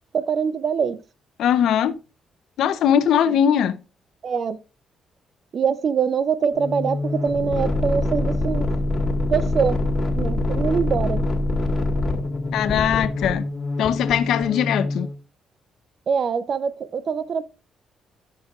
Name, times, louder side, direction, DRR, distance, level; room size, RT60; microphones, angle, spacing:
voice 1, 0.1-1.0 3.3-3.4 4.2-4.6 5.5-8.7 9.3-9.8 10.2-11.2 16.1-17.4, right 6 dB, 50° right, 0.6 m, -23 dB
voice 2, 1.4-2.0 2.6-3.8 12.5-13.4 13.8-15.1, left 9 dB, 80° left, 0.7 m, -20 dB
sound 1, 6.5-15.1, left 2 dB, 35° left, 2.0 m, -24 dB
12.5 x 7.0 x 2.4 m
cardioid pair, 90°, 0 cm